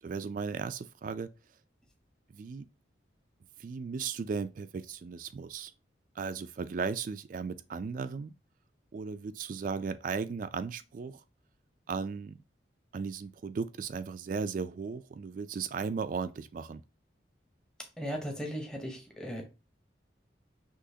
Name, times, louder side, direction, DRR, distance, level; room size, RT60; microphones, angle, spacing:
voice 1, 0.0-1.3 2.3-2.7 3.6-5.7 6.2-8.3 8.9-11.2 11.9-12.4 12.9-16.8, right 5 dB, 45° right, 0.3 m, -36 dB
voice 2, 18.0-19.4, equal, 5° left, 0.8 m, -37 dB
6.2 x 2.9 x 2.7 m
head